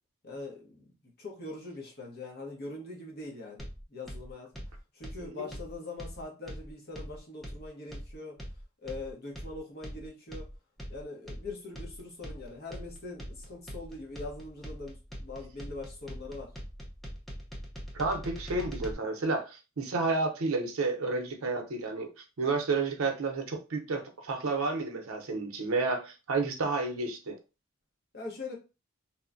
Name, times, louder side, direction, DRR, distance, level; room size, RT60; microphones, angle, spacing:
voice 1, 0.2-0.8 1.2-4.5 4.9-8.4 8.8-10.5 10.9-16.5 28.1-28.6, left 2 dB, 50° left, 0.9 m, -42 dB
sound 1, 3.6-18.9, equal, ahead, 0.5 m, -42 dB
voice 2, 17.9-27.4, right 3 dB, 80° right, 0.6 m, -31 dB
3.0 x 2.1 x 2.5 m
head